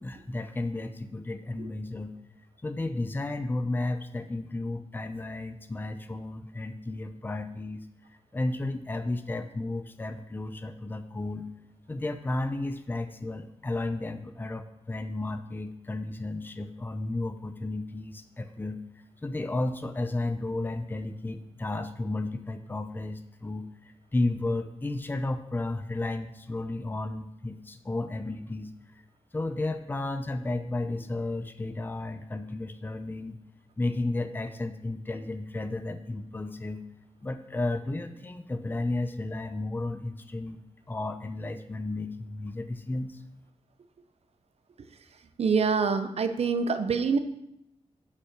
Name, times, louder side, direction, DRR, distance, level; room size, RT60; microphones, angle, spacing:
voice 1, 0.0-2.1 2.6-7.9 8.3-11.5 11.9-18.8 19.2-28.7 29.3-33.4 33.8-36.8 37.2-40.6 40.9-43.2, left 2 dB, 15° left, 8 dB, 0.6 m, -33 dB
voice 2, 45.4-47.2, right 5 dB, 65° right, 10 dB, 0.7 m, -25 dB
8.2 x 5.4 x 5.9 m, 0.81 s
wide cardioid pair, 105°, 12 cm